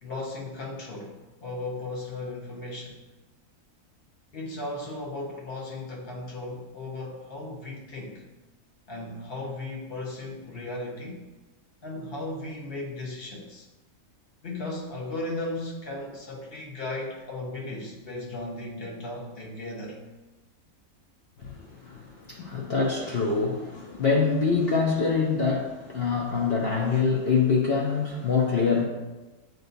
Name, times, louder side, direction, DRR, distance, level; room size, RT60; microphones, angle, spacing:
voice 1, 0.0-3.0 4.3-8.2 8.9-11.3 11.8-13.7 14.4-20.0, left 2 dB, 50° left, -3 dB, 1.0 m, -36 dB
voice 2, 21.4-28.8, left 5 dB, 65° left, -2 dB, 0.6 m, -25 dB
7.7 x 2.7 x 2.6 m, 1.1 s
omnidirectional pair, 1.5 m